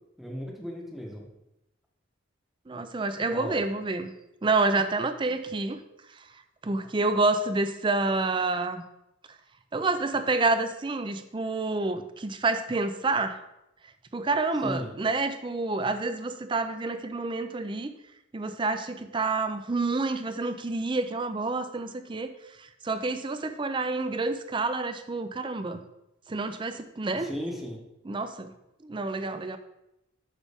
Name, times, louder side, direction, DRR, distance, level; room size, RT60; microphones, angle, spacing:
voice 1, 0.2-1.3 3.3-3.6 14.6-14.9 27.2-27.8, equal, ahead, -1 dB, 0.9 m, -35 dB
voice 2, 2.7-4.1 4.4-5.8 6.6-8.8 9.7-13.4 14.1-17.9 18.3-22.3 22.6-25.8 26.3-27.3 28.0-28.5 28.8-29.6, right 3 dB, 25° right, 10 dB, 0.4 m, -28 dB
8.1 x 6.0 x 3.5 m, 0.89 s
head